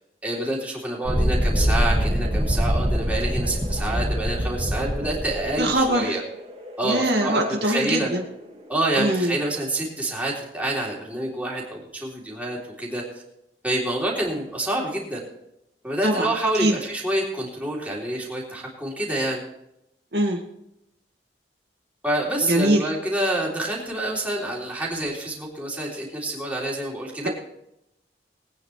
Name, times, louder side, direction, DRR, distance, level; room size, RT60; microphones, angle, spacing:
voice 1, 0.2-6.2 6.8-8.1 8.7-13.0 13.6-15.2 15.8-19.4 22.0-27.3, right 1 dB, 10° right, -4 dB, 3.5 m, -27 dB
Thunderstorm, 1.1-8.5, equal, 35° right, 2.0 m, -25 dB
voice 2, 5.6-6.2 6.8-8.2 9.0-9.3 16.0-16.3 16.6-16.7 20.1-20.4 22.4-22.9, right 1 dB, 70° right, 1 dB, 2.2 m, -22 dB
21.0 x 9.5 x 3.3 m, 0.82 s
head